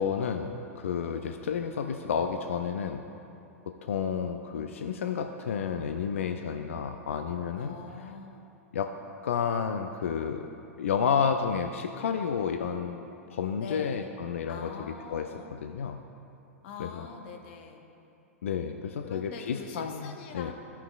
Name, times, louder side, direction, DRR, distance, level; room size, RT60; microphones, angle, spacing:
voice 1, 0.0-3.0 3.7-7.8 8.7-8.9 9.2-10.5 10.8-13.0 13.3-16.0 16.8-17.1 18.4-20.5, left 7 dB, 65° left, 6 dB, 0.4 m, -31 dB
voice 2, 1.1-1.5 7.6-8.4 13.6-14.1 14.5-15.5 16.6-17.9 19.0-20.5, left 5 dB, 50° left, 4 dB, 0.9 m, -44 dB
15.5 x 5.7 x 2.3 m, 2.8 s
figure-of-eight pair, 100°, 8 cm